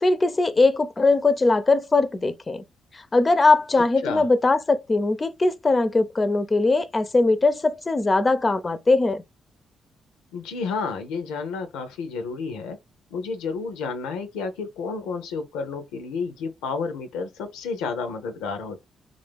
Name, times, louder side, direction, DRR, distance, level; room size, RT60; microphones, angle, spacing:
voice 1, 0.0-2.6 2.9-9.2, left 3 dB, 30° left, 0.5 m, -20 dB
voice 2, 10.3-12.8 13.1-18.8, left 4 dB, 90° left, 0.6 m, -31 dB
3.6 x 2.4 x 3.3 m
supercardioid pair, 55°, 0 cm